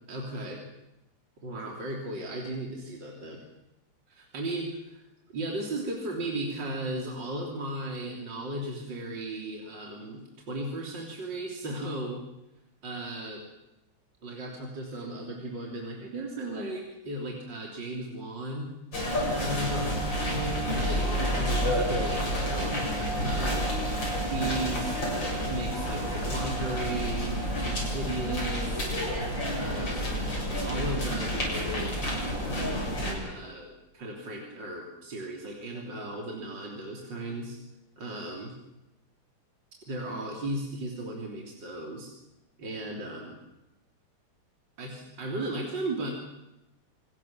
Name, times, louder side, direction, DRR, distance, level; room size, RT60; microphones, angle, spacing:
voice 1, 0.1-0.6 1.4-3.4 4.1-4.7 5.3-12.2 12.8-13.4 14.2-18.7 19.4-23.7 24.2-24.9 25.4-28.9 29.6-30.2 30.6-32.1 33.0-37.6 38.0-38.5 39.9-42.1 42.6-43.4 44.8-46.1, right 1 dB, 55° right, 0 dB, 4.0 m, -36 dB
sound 1, 18.9-33.1, equal, 55° left, 8.1 m, -29 dB
26.5 x 19.5 x 7.3 m, 0.92 s
omnidirectional pair, 2.4 m